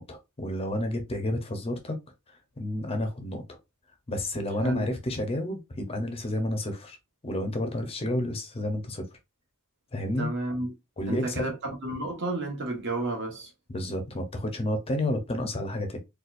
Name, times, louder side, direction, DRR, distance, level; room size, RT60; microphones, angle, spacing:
voice 1, 0.0-2.0 2.3-3.6 4.1-7.0 7.2-9.1 9.9-10.3 11.0-11.5 13.7-16.0, left 1 dB, 25° left, 0.6 m, -30 dB
voice 2, 4.6-4.9 10.2-10.7 11.1-13.5, right 2 dB, 55° right, 1.1 m, -32 dB
4.0 x 2.3 x 2.4 m
head